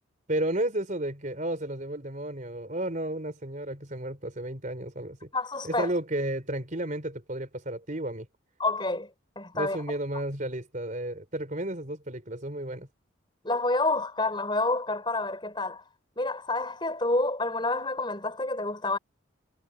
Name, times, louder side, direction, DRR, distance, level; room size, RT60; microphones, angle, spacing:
voice 1, 0.3-5.3 5.6-8.3 9.5-12.9, right 1 dB, 40° right, 4.2 m, -32 dB
voice 2, 5.3-5.9 8.6-9.1 9.4-9.8 13.4-15.8 16.2-19.0, left 2 dB, 25° left, 5.4 m, -28 dB
head